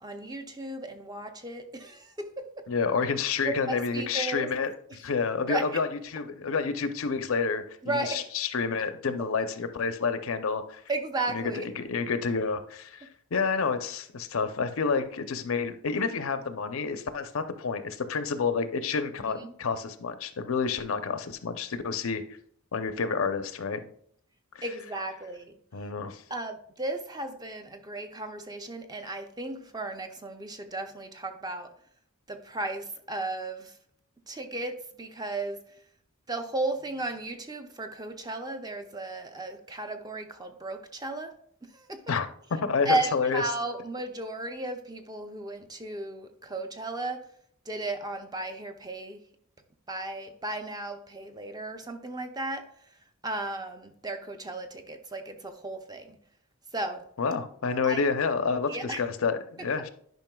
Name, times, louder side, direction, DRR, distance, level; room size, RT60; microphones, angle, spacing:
voice 1, 0.0-2.7 3.4-4.5 5.5-5.6 7.8-8.3 10.9-11.7 19.2-19.5 24.6-25.6 26.3-31.7 32.3-33.7 34.3-35.6 36.3-41.3 41.6-42.0 42.9-47.3 47.7-49.2 49.9-52.7 53.2-56.2 56.7-57.0 57.8-58.0 58.7-59.0, right 2 dB, 20° right, 6 dB, 0.5 m, -34 dB
voice 2, 2.7-10.8 11.3-22.2 22.7-23.8 24.6-24.7 25.7-26.2 42.1-42.3 42.6-43.4 57.2-59.9, left 5 dB, 70° left, 10 dB, 0.6 m, -29 dB
10.5 x 5.3 x 2.3 m, 0.64 s
head